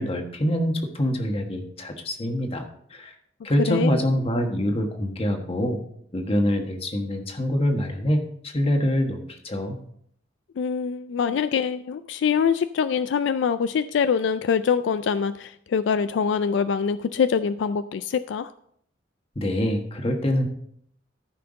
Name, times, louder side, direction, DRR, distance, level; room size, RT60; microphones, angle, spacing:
voice 1, 0.0-2.6 2.9-3.1 3.4-5.8 6.1-9.8 19.3-20.5, equal, 30° left, 4 dB, 1.3 m, -25 dB
voice 2, 10.6-18.5, left 6 dB, 75° left, 13 dB, 0.3 m, -24 dB
13.5 x 5.7 x 3.9 m, 0.69 s
head